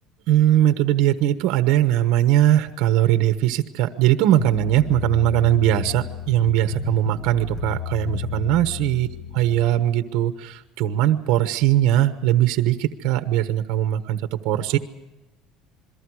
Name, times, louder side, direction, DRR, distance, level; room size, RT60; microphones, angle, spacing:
voice 1, 0.3-9.1 9.3-14.8, right 12 dB, 70° right, 9 dB, 1.1 m, -20 dB
sound 1, 4.4-9.7, left 6 dB, 40° left, 6.2 m, -32 dB
28.0 x 22.5 x 4.9 m, 1.1 s
cardioid pair, 160°, 0 cm